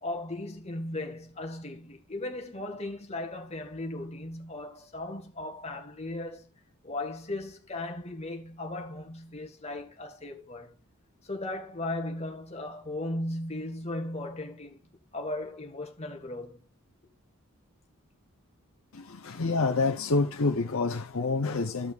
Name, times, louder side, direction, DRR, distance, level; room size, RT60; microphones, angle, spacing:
voice 1, 0.0-6.5 6.8-10.8 11.3-14.8 15.1-16.6, left 2 dB, 30° left, 1.7 m, -37 dB
voice 2, 18.9-21.9, left 3 dB, 65° left, 0.8 m, -27 dB
15.0 x 5.9 x 2.5 m
head